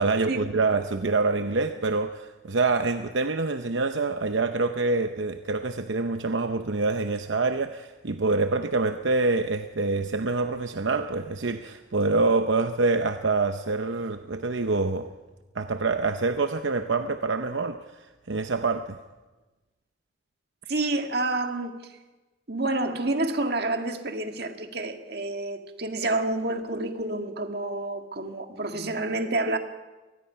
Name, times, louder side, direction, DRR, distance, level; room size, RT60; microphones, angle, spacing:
voice 1, 0.0-15.1 15.5-19.0, right 3 dB, 80° right, 0.8 m, -26 dB
voice 2, 20.7-21.9 22.5-29.6, right 2 dB, 55° right, 1.9 m, -29 dB
24.0 x 20.0 x 5.7 m
head